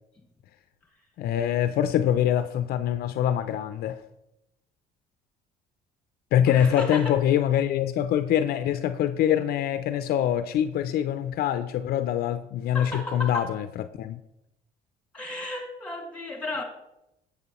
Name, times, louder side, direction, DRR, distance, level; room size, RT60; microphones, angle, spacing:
voice 1, 1.2-4.0 6.3-13.7 14.0-14.2, left 10 dB, 65° left, 0.4 m, -24 dB
voice 2, 6.5-7.2 12.7-13.6 15.1-16.6, left 2 dB, 10° left, 2.0 m, -34 dB
10.5 x 7.0 x 3.0 m
cardioid pair, 110°, 17 cm